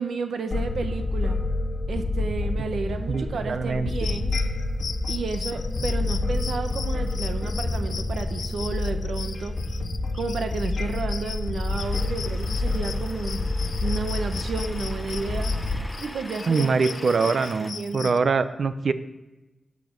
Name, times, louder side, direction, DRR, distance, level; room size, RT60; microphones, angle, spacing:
voice 1, 0.0-1.4 1.9-4.3 5.1-9.6 10.1-15.5 16.0-18.1, right 4 dB, 80° right, 8 dB, 0.9 m, -32 dB
sound 1, 0.5-15.8, left 2 dB, 45° left, 1.6 m, -28 dB
voice 2, 3.1-3.9 16.5-18.9, right 4 dB, 55° right, 12 dB, 0.6 m, -23 dB
sound 2, 3.9-18.2, left 6 dB, 90° left, 0.5 m, -39 dB
sound 3, 11.8-17.7, left 1 dB, 5° left, 0.7 m, -43 dB
12.5 x 8.4 x 5.3 m, 1.0 s
wide cardioid pair, 165°, 0 cm